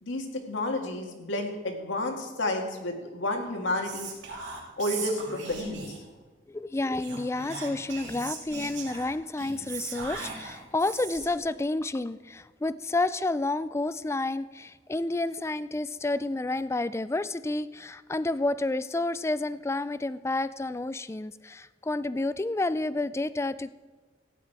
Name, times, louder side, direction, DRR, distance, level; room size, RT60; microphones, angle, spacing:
voice 1, 0.0-4.1 4.8-6.0, left 1 dB, 85° left, 3 dB, 1.9 m, -31 dB
Whispering, 3.8-6.1 7.0-11.4, right 4 dB, 75° right, 2.8 m, -39 dB
voice 2, 6.5-23.7, left 2 dB, 15° left, 15 dB, 0.3 m, -30 dB
15.0 x 9.5 x 4.7 m, 1.3 s
head